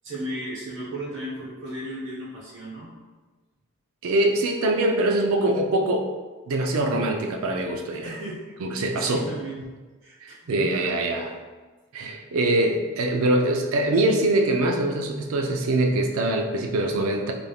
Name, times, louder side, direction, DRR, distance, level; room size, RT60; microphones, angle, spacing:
voice 1, 0.0-2.9 7.9-9.6 10.0-11.1, right 1 dB, 55° right, -6 dB, 1.0 m, -35 dB
voice 2, 4.0-6.1 6.5-8.1 8.6-9.2 10.2-11.4 11.9-17.3, right 1 dB, 70° right, 3 dB, 0.4 m, -23 dB
3.4 x 2.5 x 2.3 m, 1.3 s
head